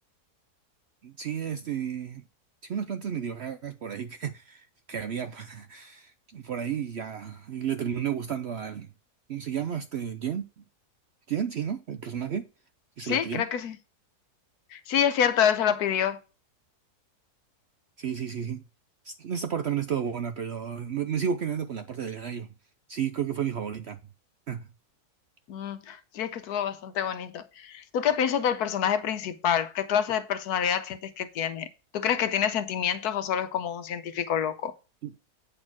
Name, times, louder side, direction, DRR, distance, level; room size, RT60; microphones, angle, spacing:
voice 1, 1.0-2.2 2.6-8.9 9.3-10.6 11.3-12.5 13.0-13.5 18.0-18.6 19.0-22.5 22.9-24.0 24.5-24.7 35.0-35.1, right 8 dB, 60° right, 0.7 m, -32 dB
voice 2, 13.0-13.8 14.7-16.2 25.5-31.7 31.9-34.7, left 8 dB, 75° left, 1.3 m, -27 dB
8.7 x 4.3 x 5.9 m
omnidirectional pair, 1.7 m